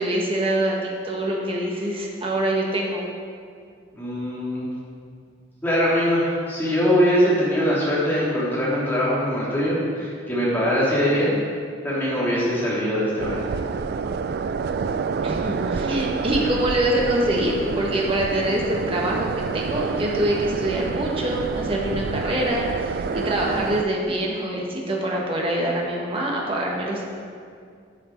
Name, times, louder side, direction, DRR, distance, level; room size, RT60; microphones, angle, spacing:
voice 1, 0.0-3.1 15.2-27.0, right 1 dB, 30° right, -2 dB, 1.5 m, -25 dB
voice 2, 4.0-4.7 5.6-11.4 11.8-13.4, equal, 10° left, -8 dB, 2.8 m, -22 dB
sound 1, 13.2-23.8, right 5 dB, 55° right, 0.3 m, -28 dB
11.5 x 6.5 x 4.6 m, 2.2 s
head